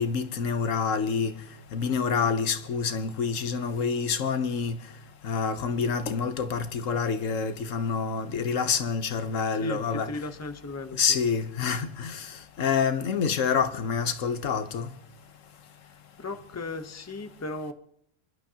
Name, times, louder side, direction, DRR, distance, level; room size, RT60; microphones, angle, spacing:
voice 1, 0.0-1.3 1.7-4.8 5.2-10.1 11.0-12.3 12.6-14.9, left 6 dB, 80° left, 1.3 m, -27 dB
voice 2, 9.6-11.2 15.8-17.7, left 2 dB, 15° left, 0.8 m, -37 dB
27.0 x 11.5 x 2.9 m
omnidirectional pair, 1.3 m